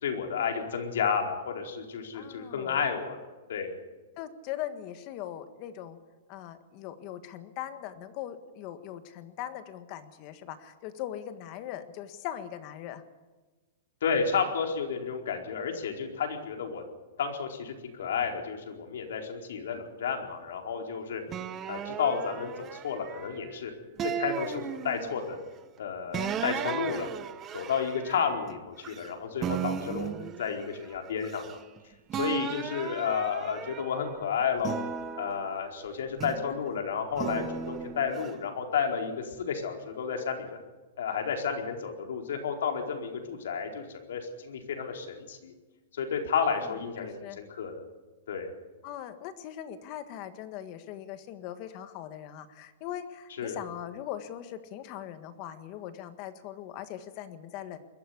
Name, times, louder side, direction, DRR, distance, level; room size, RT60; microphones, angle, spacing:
voice 1, 0.0-3.7 14.0-16.8 17.2-17.7 18.0-21.2 21.7-23.7 24.0-25.4 25.8-27.1 27.5-31.5 32.1-34.8 35.2-40.6 41.0-45.5 45.9-47.8 48.3-48.5 53.4-53.6, left 6 dB, 75° left, 3 dB, 4.5 m, -31 dB
voice 2, 2.1-2.8 4.2-6.0 6.3-13.0 36.3-36.7 47.0-47.4 48.8-57.8, left 11 dB, 30° left, 10 dB, 1.6 m, -40 dB
sound 1, 21.3-23.5 24.0-25.3 26.1-29.1 29.4-31.8 32.1-34.1 34.6-36.6 37.2-38.3, right 8 dB, 15° right, 0.9 m, -36 dB
21.5 x 14.5 x 9.6 m, 1.2 s
supercardioid pair, 175°, 0 cm